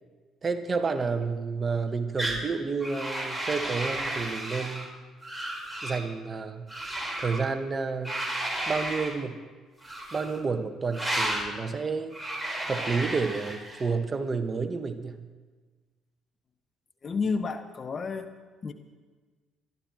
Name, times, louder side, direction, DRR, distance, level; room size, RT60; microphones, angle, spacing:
voice 1, 0.4-4.9 5.8-6.7 7.2-8.2 8.7-9.4 10.1-12.2 12.6-15.2, right 4 dB, 35° right, 7 dB, 1.4 m, -30 dB
sound 1, 2.2-2.4 2.8-4.9 5.2-6.0 6.7-7.5 8.0-9.2 9.8-10.4 10.9-11.5 12.1-13.9, right 1 dB, 5° right, 4.4 m, -33 dB
voice 2, 17.0-18.3 18.6-18.7, left 4 dB, 40° left, 8 dB, 1.2 m, -30 dB
26.0 x 12.0 x 3.1 m, 1.4 s
hypercardioid pair, 55°, 0 cm